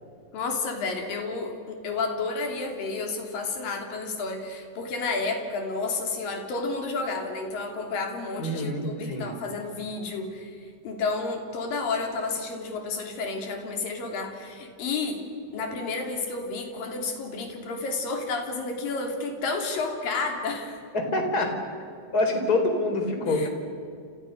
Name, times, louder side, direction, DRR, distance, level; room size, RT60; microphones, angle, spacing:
voice 1, 0.3-15.3 15.5-20.8 23.3-23.5, left 3 dB, 50° left, 3 dB, 4.5 m, -31 dB
voice 2, 8.4-9.3 20.9-21.5 22.1-23.5, left 2 dB, 20° left, 4 dB, 4.0 m, -26 dB
29.5 x 28.0 x 6.7 m, 2.4 s
omnidirectional pair, 5.4 m